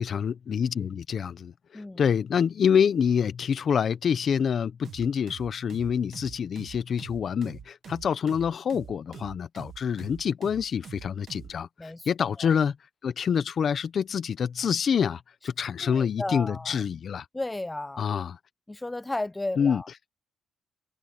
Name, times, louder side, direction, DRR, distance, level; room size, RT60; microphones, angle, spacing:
voice 1, 0.0-12.8 13.0-17.2 18.0-18.4 19.6-19.8, left 7 dB, 55° left, 1.2 m, -27 dB
sound 1, 4.8-11.6, right 8 dB, 55° right, 1.3 m, -45 dB
voice 2, 15.8-16.8 17.3-18.1 18.7-19.9, left 2 dB, 15° left, 0.4 m, -33 dB
cardioid pair, 90°, 0 cm